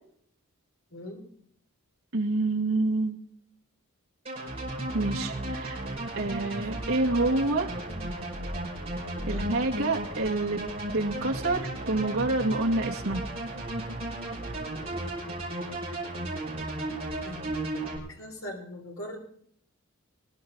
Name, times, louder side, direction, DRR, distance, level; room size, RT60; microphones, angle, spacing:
voice 1, 0.9-1.2 9.1-9.5 17.2-17.4 18.2-19.2, left 1 dB, 65° left, 2 dB, 3.7 m, -40 dB
voice 2, 2.1-3.2 4.9-5.8 6.1-7.8 9.3-10.6 10.9-13.2, right 2 dB, 65° right, -1 dB, 2.2 m, -27 dB
sound 1, 4.3-18.0, right 1 dB, 30° right, 5.4 m, -34 dB
22.5 x 11.0 x 4.0 m, 0.66 s
head